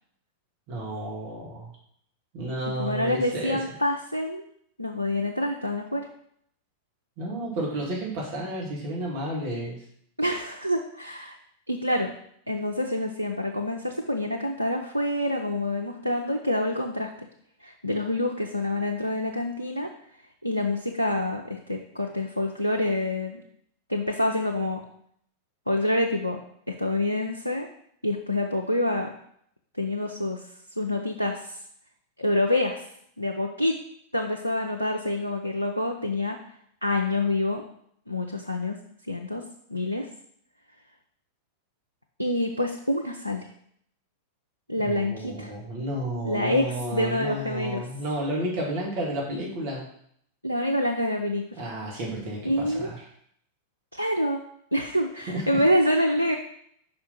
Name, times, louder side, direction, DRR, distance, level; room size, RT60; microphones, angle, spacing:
voice 1, 0.7-1.7 2.3-3.6 7.2-9.8 44.8-49.9 51.6-53.0 55.3-55.6, right 1 dB, 45° right, -3 dB, 1.9 m, -32 dB
voice 2, 2.8-4.4 4.8-6.1 10.2-11.4 11.7-12.1 12.5-17.1 17.6-19.9 20.4-23.4 23.9-24.8 25.7-26.4 26.7-27.7 28.0-29.1 29.8-30.4 30.8-31.6 32.2-32.8 33.2-33.8 34.1-36.4 36.8-37.6 38.1-38.8 39.1-39.4 39.7-40.1 42.2-43.5 44.7-45.5 46.2-46.7 46.9-47.8 50.4-51.6 52.4-52.9 53.9-54.4 54.7-56.4, left 1 dB, 90° left, 1 dB, 0.5 m, -26 dB
5.5 x 4.4 x 5.3 m, 0.68 s
figure-of-eight pair, 90°, 0 cm